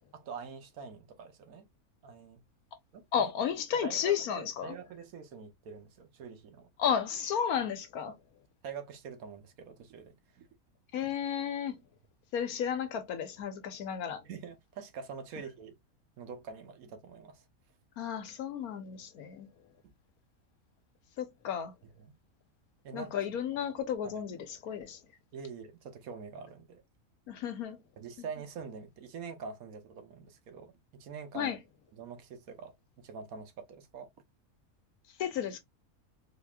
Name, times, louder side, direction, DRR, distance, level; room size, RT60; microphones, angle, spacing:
voice 1, 0.1-1.7 2.0-2.4 2.9-3.3 3.7-6.7 8.1-8.2 8.6-10.5 11.0-11.1 14.2-15.7 16.2-17.4 22.0-22.1 22.8-23.1 23.5-23.6 24.0-24.2 25.3-26.8 28.0-30.7 31.0-31.5 31.9-34.1, right 5 dB, 75° right, 1.2 m, -45 dB
voice 2, 3.1-4.8 6.8-8.1 10.9-11.8 12.3-14.2 18.0-19.5 21.2-21.7 22.9-25.0 27.3-27.8 31.3-31.6 35.2-35.6, left 8 dB, 80° left, 1.2 m, -33 dB
4.1 x 3.0 x 2.3 m
omnidirectional pair, 1.6 m